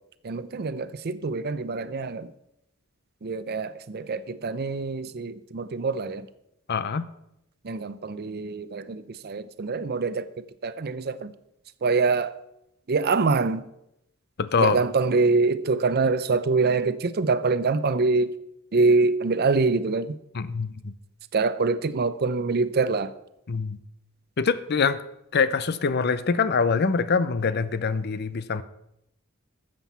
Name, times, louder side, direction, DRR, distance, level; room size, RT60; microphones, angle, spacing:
voice 1, 0.2-2.3 3.2-6.3 7.6-11.3 11.8-12.3 12.9-13.6 14.6-18.3 18.7-20.2 21.3-23.1, right 4 dB, 50° right, 0.6 m, -25 dB
voice 2, 6.7-7.0 14.4-14.8 20.3-20.9 23.5-23.8 24.4-25.0 25.3-28.6, left 5 dB, 50° left, 0.6 m, -24 dB
13.0 x 7.6 x 5.6 m
head